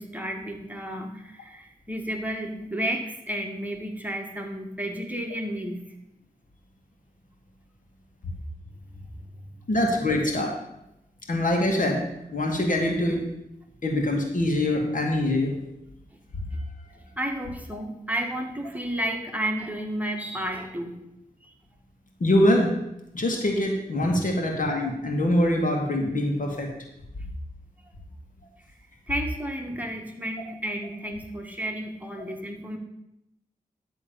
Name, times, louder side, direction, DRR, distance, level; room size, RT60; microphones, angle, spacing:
voice 1, 0.0-5.8 8.8-9.1 17.2-21.0 24.0-24.2 29.1-32.8, right 1 dB, 10° right, 2 dB, 1.8 m, -32 dB
voice 2, 9.7-10.6 11.3-12.0 12.3-13.2 13.8-15.6 22.2-22.7 23.1-26.7, left 1 dB, 60° left, 1 dB, 2.3 m, -24 dB
11.5 x 3.9 x 7.1 m, 0.85 s
cardioid pair, 40°, 15 cm